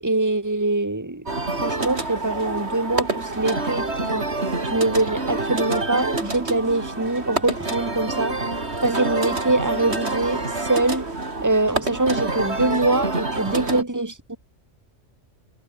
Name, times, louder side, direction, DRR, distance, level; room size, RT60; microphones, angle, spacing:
voice 1, 0.0-4.3 4.7-8.4 8.8-11.0 11.4-14.4, right 2 dB, 15° right, 2.5 m, -23 dB
sound 1, 1.3-13.8, right 2 dB, 60° right, 4.0 m, -27 dB
omnidirectional pair, 1.3 m